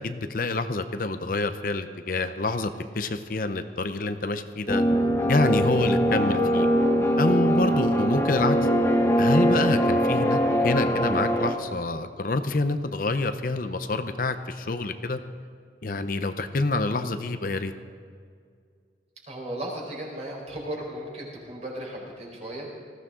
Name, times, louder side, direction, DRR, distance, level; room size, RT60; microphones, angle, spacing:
voice 1, 0.0-4.8 5.3-6.7 7.2-8.6 9.2-15.2 15.8-17.7, left 2 dB, 50° left, 9 dB, 0.7 m, -27 dB
sound 1, 4.7-11.5, equal, 15° left, 1.0 m, -22 dB
voice 2, 19.3-22.7, right 1 dB, 40° right, -3 dB, 4.3 m, -35 dB
19.5 x 15.5 x 3.8 m, 2.1 s
head